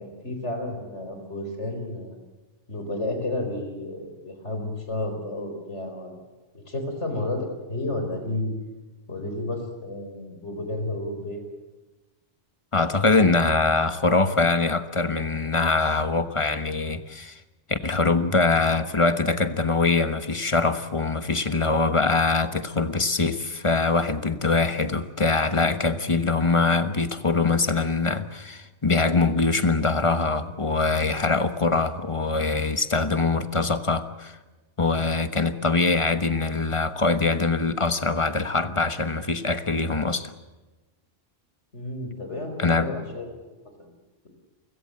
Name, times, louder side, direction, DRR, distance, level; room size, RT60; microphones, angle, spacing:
voice 1, 0.0-2.2 2.7-6.2 6.5-8.5 9.1-11.4 41.7-43.3 43.8-43.9, left 2 dB, 75° left, 5 dB, 4.9 m, -31 dB
voice 2, 12.7-17.4 17.7-34.4 34.8-40.3 42.6-42.9, left 3 dB, 25° left, 11 dB, 1.2 m, -23 dB
29.0 x 16.5 x 8.7 m, 1.2 s
omnidirectional pair, 1.2 m